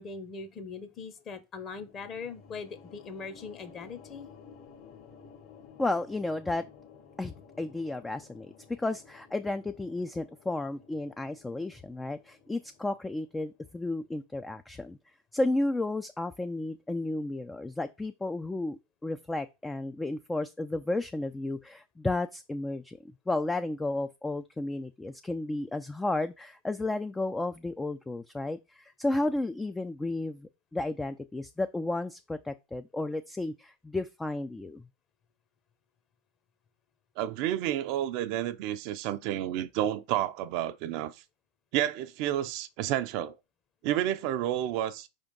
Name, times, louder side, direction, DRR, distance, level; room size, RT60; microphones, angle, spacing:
voice 1, 0.0-4.3, left 5 dB, 35° left, 1.1 m, -41 dB
sound 1, 1.7-14.0, left 6 dB, 50° left, 1.6 m, -54 dB
voice 2, 5.8-6.6 7.2-15.0 15.3-34.9, left 2 dB, 10° left, 0.4 m, -33 dB
voice 3, 37.2-41.1 41.7-43.3 43.8-45.1, right 12 dB, 50° right, 0.5 m, -30 dB
5.0 x 3.6 x 5.2 m
figure-of-eight pair, 85°, 0 cm